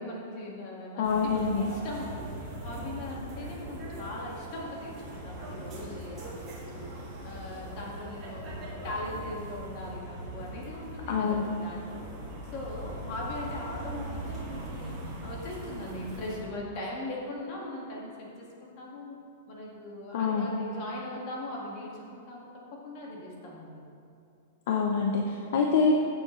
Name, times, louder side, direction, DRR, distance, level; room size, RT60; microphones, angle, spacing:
voice 1, 0.0-6.9 7.2-12.1 12.5-19.1 19.5-22.5 22.8-23.8, left 1 dB, 35° left, -3 dB, 2.0 m, -40 dB
voice 2, 1.0-1.6 11.1-11.5 20.1-20.5 24.7-26.0, left 4 dB, 55° left, 1 dB, 0.8 m, -25 dB
sound 1, 1.0-16.4, right 1 dB, 15° right, 2.2 m, -41 dB
15.5 x 7.0 x 3.3 m, 2.5 s
supercardioid pair, 170°, 0 cm